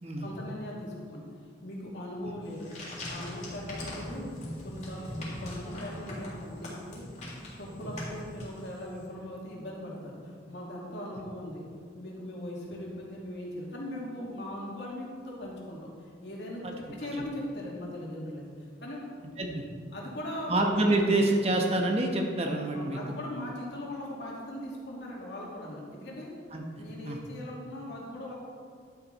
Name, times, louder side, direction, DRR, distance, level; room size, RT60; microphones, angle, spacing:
voice 1, 0.2-1.2 1.6-2.7 3.1-4.3 4.6-7.0 7.6-11.6 11.9-19.0 19.3-19.4 19.9-20.6 22.7-26.3 26.7-28.3, left 1 dB, 75° left, -4 dB, 2.7 m, -39 dB
sound 1, 2.4-9.0, left 1 dB, 40° left, 3.3 m, -41 dB
voice 2, 20.5-23.0 26.5-26.6 27.0-27.2, right 2 dB, 35° right, 2 dB, 1.1 m, -27 dB
11.5 x 8.9 x 4.2 m, 2.1 s
head